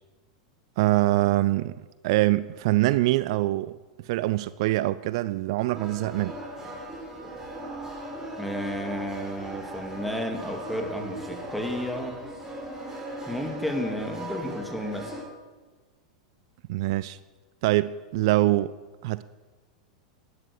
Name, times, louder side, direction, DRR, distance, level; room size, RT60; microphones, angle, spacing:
voice 1, 0.8-1.7 2.0-3.7 4.0-6.3 16.7-17.2 17.6-18.8 19.0-19.2, right 17 dB, 60° right, 17 dB, 0.4 m, -24 dB
sound 1, 5.7-15.2, right 1 dB, 15° right, 3.9 m, -38 dB
voice 2, 8.4-12.2 13.3-15.1, equal, ahead, 4 dB, 2.2 m, -32 dB
12.5 x 11.0 x 6.6 m, 1.3 s
hypercardioid pair, 95°, 3 cm